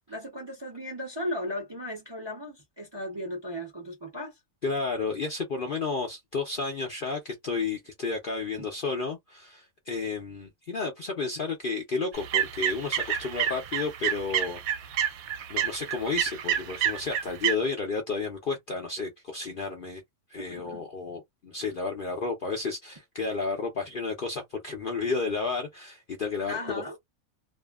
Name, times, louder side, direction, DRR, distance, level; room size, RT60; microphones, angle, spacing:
voice 1, 0.1-4.4 8.6-8.7 20.4-20.8 26.5-27.0, left 1 dB, 25° right, 0.6 m, -36 dB
voice 2, 4.6-15.2 15.5-20.0 20.3-27.0, left 4 dB, 55° left, 0.6 m, -32 dB
sound 1, 12.1-17.5, right 10 dB, 75° right, 1.0 m, -29 dB
2.6 x 2.4 x 2.3 m
omnidirectional pair, 1.6 m